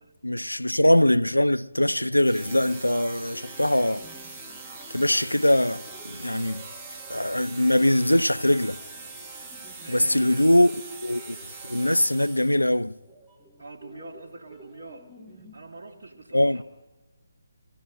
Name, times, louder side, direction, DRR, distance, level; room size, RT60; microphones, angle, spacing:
voice 1, 0.2-4.1 4.9-6.7 7.1-8.8 9.9-10.7 11.0-11.4 11.7-13.0 16.3-16.6, left 1 dB, 85° left, 0.4 m, -22 dB
sound 1, 1.8-15.5, left 1 dB, 5° left, 2.3 m, -52 dB
sound 2, 2.2-12.8, right 4 dB, 15° right, 1.7 m, -42 dB
voice 2, 9.8-10.6 13.6-15.1 15.3-16.6, right 3 dB, 50° right, 1.5 m, -44 dB
22.5 x 15.0 x 3.9 m
figure-of-eight pair, 145°, 0 cm